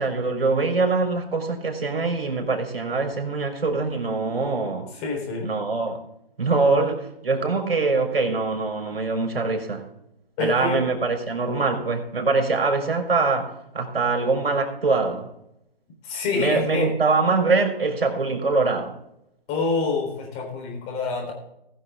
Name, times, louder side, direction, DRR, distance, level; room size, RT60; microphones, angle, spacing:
voice 1, 0.0-4.9 5.4-6.0 6.4-9.9 10.4-15.3 16.3-18.9, right 3 dB, 70° right, 4.3 m, -23 dB
voice 2, 5.0-5.5 8.9-9.0 10.4-10.8 16.0-16.9 19.5-21.3, left 4 dB, 20° left, 3.8 m, -27 dB
20.5 x 6.9 x 3.6 m
hypercardioid pair, 145°, 30 cm